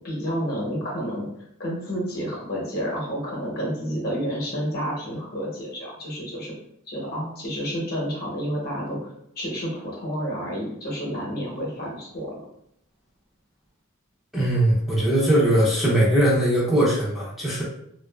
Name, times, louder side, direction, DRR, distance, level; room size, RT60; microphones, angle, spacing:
voice 1, 0.0-1.3 1.6-6.5 6.9-9.0 9.4-12.4, equal, 45° left, -3 dB, 0.8 m, -30 dB
voice 2, 14.3-17.6, right 1 dB, ahead, -7 dB, 0.5 m, -20 dB
2.5 x 2.3 x 2.2 m, 0.73 s
head